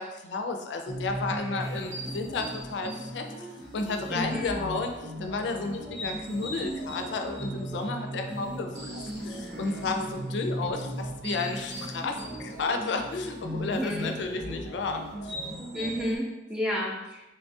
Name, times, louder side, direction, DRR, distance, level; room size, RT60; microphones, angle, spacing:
voice 1, 0.0-3.5 3.7-4.9 5.2-15.3, left 3 dB, 85° left, 5 dB, 0.4 m, -32 dB
sound 1, 0.9-16.2, right 1 dB, 75° right, 1.0 m, -37 dB
voice 2, 4.1-4.6 13.5-14.1 15.7-17.3, equal, 5° right, -4 dB, 0.5 m, -32 dB
3.9 x 2.3 x 2.6 m, 1.0 s
head